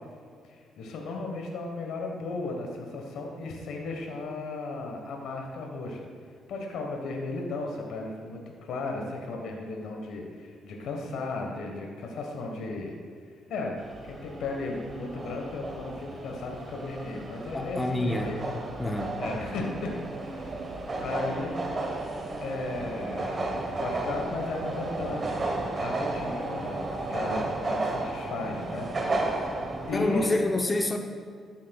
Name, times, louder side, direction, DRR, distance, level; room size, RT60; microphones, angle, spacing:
voice 1, 0.4-6.1 6.5-12.9 13.5-13.8 14.0-18.4 19.2-20.5 21.0-21.6 22.4-25.5 25.7-29.6 29.9-30.4, left 3 dB, 80° left, 1 dB, 1.2 m, -35 dB
sound 1, 13.8-30.3, right 2 dB, 35° right, 1.1 m, -33 dB
voice 2, 17.5-18.3 18.8-19.2 29.9-31.0, left 2 dB, 20° left, 4 dB, 0.7 m, -27 dB
12.5 x 7.4 x 2.3 m, 2.2 s
cardioid pair, 90°, 0 cm